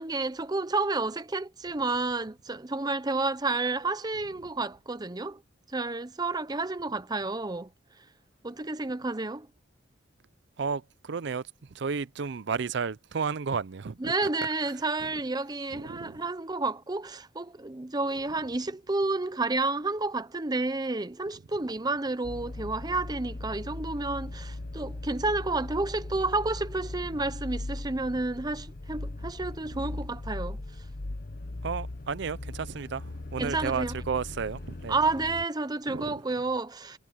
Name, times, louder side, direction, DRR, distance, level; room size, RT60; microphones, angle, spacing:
voice 1, 0.0-5.4 5.7-7.7 8.4-9.5 14.0-30.6 33.4-34.0 34.9-37.0, right 3 dB, 20° right, 0.8 m, -30 dB
voice 2, 10.6-11.4 11.7-14.1 15.7-16.2 31.6-34.9 35.9-36.2, right 5 dB, 65° right, 0.5 m, -32 dB
sound 1, 22.2-35.5, left 2 dB, 50° left, 0.9 m, -39 dB
head